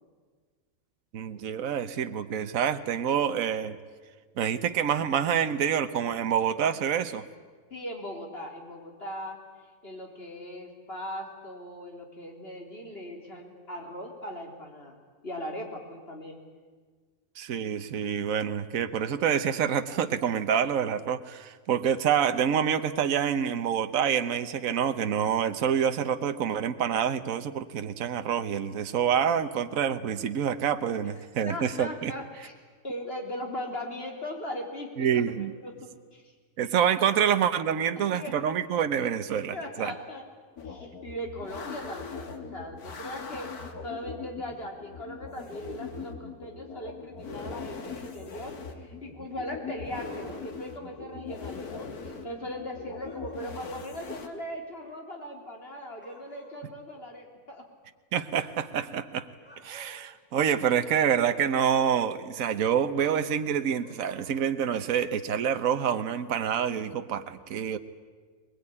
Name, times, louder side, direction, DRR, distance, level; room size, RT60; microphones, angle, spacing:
voice 1, 1.1-3.8 4.4-7.2 17.4-32.1 35.0-35.5 36.6-39.9 58.1-59.3 59.6-67.8, right 8 dB, 65° right, 9 dB, 1.4 m, -27 dB
voice 2, 7.7-9.4 9.8-16.4 31.4-32.5 32.8-36.2 38.1-38.3 39.5-40.2 40.6-43.5 43.8-57.6, left 1 dB, 40° left, 2 dB, 3.7 m, -39 dB
sound 1, 40.6-54.3, left 5 dB, 75° left, 2.2 m, -41 dB
sound 2, 50.1-50.9 53.0-53.9 56.0-56.6 59.3-60.1 63.8-64.3, equal, 5° left, 4.3 m, -53 dB
21.5 x 21.5 x 9.9 m, 1.5 s
omnidirectional pair, 1.6 m